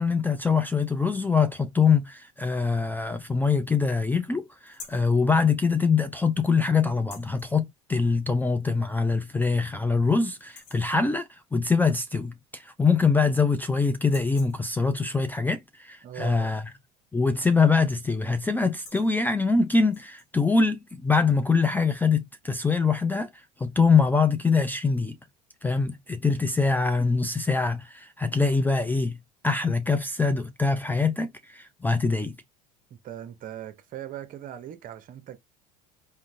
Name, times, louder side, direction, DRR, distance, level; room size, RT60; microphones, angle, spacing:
voice 1, 0.0-16.6 17.1-25.2 25.6-29.2 29.4-32.4, left 4 dB, 10° left, 0.4 m, -24 dB
sound 1, 4.7-5.1 6.9-7.5 8.8-8.9 9.4-9.5 9.9-10.1 10.4-10.9 12.3-12.4 12.7-13.4 14.0-14.9 17.2-17.6 17.8-18.1 18.6-19.1 19.8-20.3, left 5 dB, 80° left, 1.2 m, -48 dB
voice 2, 16.0-16.5 26.4-26.6 32.9-35.4, right 11 dB, 45° right, 0.8 m, -40 dB
3.6 x 2.1 x 2.6 m
hypercardioid pair, 85°, 20 cm